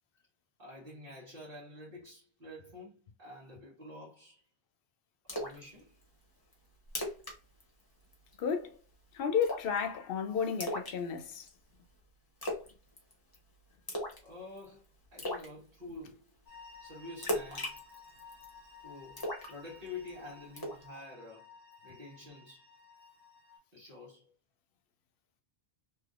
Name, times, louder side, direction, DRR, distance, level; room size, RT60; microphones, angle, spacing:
voice 1, 0.6-4.4 5.3-5.9 14.2-16.3 16.8-17.8 18.8-21.5 21.8-22.7 23.7-24.3, left 2 dB, 60° right, 1.5 m, -48 dB
Splash splatter, 5.3-5.6 6.0-6.1 6.5-6.6 6.9-7.4 7.6-7.8 8.1-8.5 9.4-9.8 10.6-11.5 12.4-12.7 13.0-13.4 13.9-14.3 14.6-14.7 15.2-15.5 17.2-18.5 19.2-20.1 20.6-20.8, left 1 dB, 25° left, 0.8 m, -36 dB
voice 2, 8.4-8.8 9.1-11.5, left 7 dB, 65° left, 0.7 m, -32 dB
sound 1, 16.4-23.6, left 5 dB, 25° right, 1.4 m, -55 dB
3.3 x 2.8 x 2.4 m
omnidirectional pair, 1.1 m